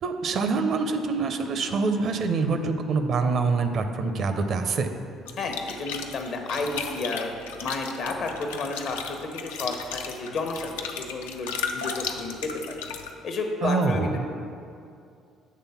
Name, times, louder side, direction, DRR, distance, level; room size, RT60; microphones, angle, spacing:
voice 1, 0.0-4.9 13.6-14.2, right 4 dB, 60° right, 7 dB, 0.5 m, -25 dB
sound 1, 5.3-13.1, left 6 dB, 90° left, 0.4 m, -35 dB
voice 2, 5.4-7.3 7.6-12.8 13.2-14.2, left 3 dB, 60° left, 3 dB, 0.9 m, -31 dB
7.5 x 3.4 x 5.6 m, 2.5 s
hypercardioid pair, 60°, 0 cm